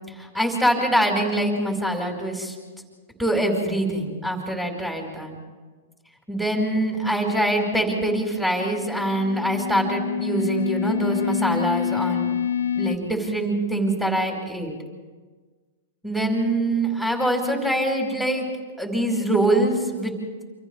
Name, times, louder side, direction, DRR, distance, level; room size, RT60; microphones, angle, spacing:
voice 1, 0.2-2.5 3.2-5.4 6.3-12.3 12.7-14.7 16.0-18.5 18.8-20.1, right 1 dB, 5° right, 1 dB, 4.8 m, -24 dB
sound 1, 8.6-13.0, left 8 dB, 85° left, 1.1 m, -27 dB
29.0 x 26.0 x 3.5 m, 1.4 s
hypercardioid pair, 115°, 0 cm